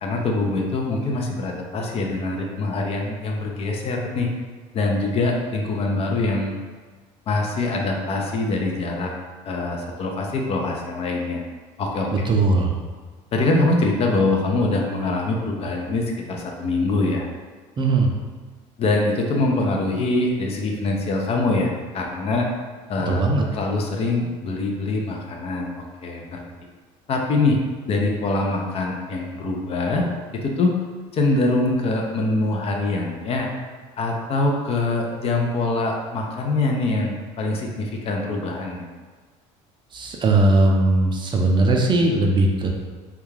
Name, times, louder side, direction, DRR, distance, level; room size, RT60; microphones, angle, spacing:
voice 1, 0.0-4.3 4.7-6.6 7.3-9.1 9.4-11.4 11.8-12.1 13.3-17.3 18.8-22.5 22.9-23.2 23.5-26.4 27.1-27.6 27.9-30.1 30.3-30.7 31.1-33.5 34.0-38.8, left 2 dB, 40° left, 1 dB, 0.4 m, -24 dB
voice 2, 12.3-12.7 17.8-18.1 23.1-23.5 39.9-42.7, right 2 dB, 30° right, 0 dB, 0.4 m, -19 dB
2.3 x 2.3 x 3.1 m, 1.4 s
supercardioid pair, 100°, 15 cm